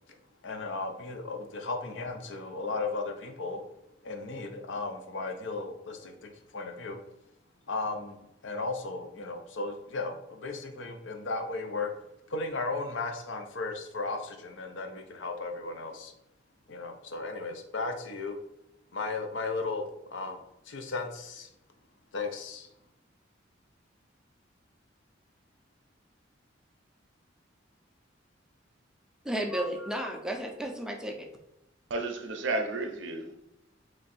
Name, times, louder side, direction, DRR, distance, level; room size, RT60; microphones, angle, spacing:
voice 1, 0.4-3.6 4.0-7.0 7.7-11.9 12.3-16.1 16.7-18.4 18.9-20.4 20.7-21.5 22.1-22.7, left 3 dB, 75° left, 0.6 m, -35 dB
voice 2, 29.2-31.3, right 1 dB, 5° right, 0.4 m, -33 dB
voice 3, 31.9-33.4, right 2 dB, 70° right, 0.5 m, -32 dB
3.1 x 2.6 x 4.0 m
head